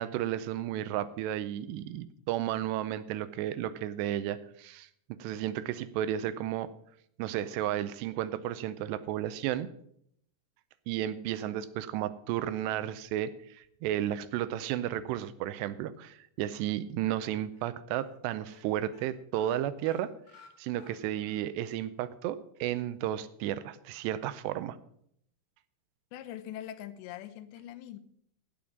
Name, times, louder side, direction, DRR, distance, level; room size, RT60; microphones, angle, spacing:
voice 1, 0.0-4.9 5.2-6.7 7.2-9.7 10.9-20.1 20.6-24.8, right 12 dB, 80° right, 14 dB, 2.7 m, -33 dB
sound 1, 16.6-17.2 17.5-17.7 18.0-18.2 18.4-21.4 21.8-21.9 22.3-22.4, left 4 dB, 50° left, 2.1 m, -57 dB
voice 2, 26.1-28.0, left 11 dB, 85° left, 12 dB, 3.0 m, -42 dB
16.5 x 5.5 x 7.2 m, 0.69 s
omnidirectional pair, 5.0 m